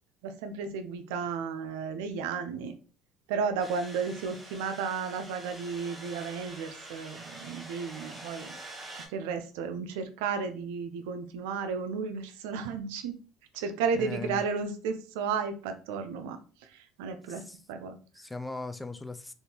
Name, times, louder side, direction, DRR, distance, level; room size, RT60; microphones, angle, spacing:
voice 1, 0.2-2.7 3.3-8.5 8.9-13.1 13.5-16.4 16.7-17.4 17.7-18.0, right 5 dB, 85° right, 0.5 m, -33 dB
sound 1, 3.6-9.1, right 1 dB, 15° right, 1.0 m, -46 dB
voice 2, 13.9-14.4 17.3-17.6 18.1-19.3, left 3 dB, 10° left, 0.4 m, -39 dB
3.5 x 2.5 x 2.8 m
supercardioid pair, 90°, 0 cm